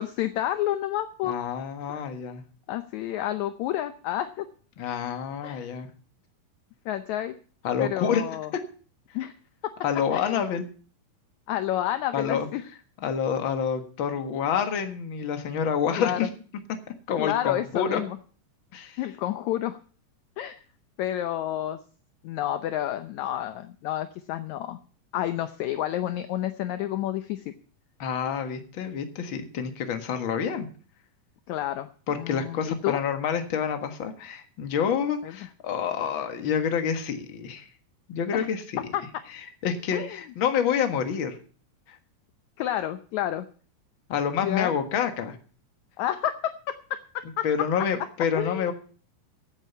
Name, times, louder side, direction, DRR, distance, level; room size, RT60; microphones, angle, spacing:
voice 1, 0.0-1.4 1.9-2.0 2.7-4.5 5.4-5.7 6.8-7.3 7.8-8.5 9.1-9.3 9.6-9.7 10.1-10.4 11.5-12.6 16.0-16.2 17.2-18.2 19.0-19.8 20.4-20.6 21.0-21.8 22.2-24.8 25.1-27.5 31.5-33.0 35.2-35.4 38.3-38.5 38.9-39.0 39.9-40.2 42.6-43.5 44.4-44.7 46.0-46.5 46.9-47.4 48.3-48.7, left 12 dB, 80° left, 10 dB, 1.7 m, -30 dB
voice 2, 1.2-2.4 4.8-5.9 7.6-8.2 9.8-10.6 12.1-12.5 13.0-16.3 17.1-18.0 18.7-19.0 28.0-30.7 32.1-37.7 38.1-38.8 39.6-41.4 41.9-42.0 44.1-45.3 47.4-48.7, left 7 dB, 45° left, 6 dB, 1.7 m, -28 dB
15.5 x 8.9 x 5.6 m, 0.42 s
omnidirectional pair, 4.1 m